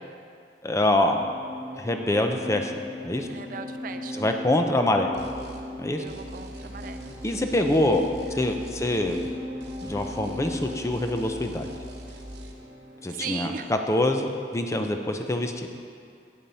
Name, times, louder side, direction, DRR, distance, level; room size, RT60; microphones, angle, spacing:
voice 1, 0.6-1.2 1.8-2.7 3.0-3.3 4.2-5.1 5.8-6.0 7.2-8.0 8.4-9.2 9.8-11.7 13.0-15.7, left 1 dB, 15° left, 4 dB, 0.5 m, -25 dB
sound 1, 1.1-14.4, left 1 dB, 15° right, 1.5 m, -39 dB
voice 2, 3.3-4.3 6.0-7.1 7.6-7.9 13.1-13.7, right 6 dB, 50° right, 8 dB, 0.4 m, -39 dB
sound 2, 5.1-5.7 6.1-9.4 9.6-12.5, right 1 dB, 75° right, 1.0 m, -43 dB
8.6 x 7.2 x 5.5 m, 2.3 s
head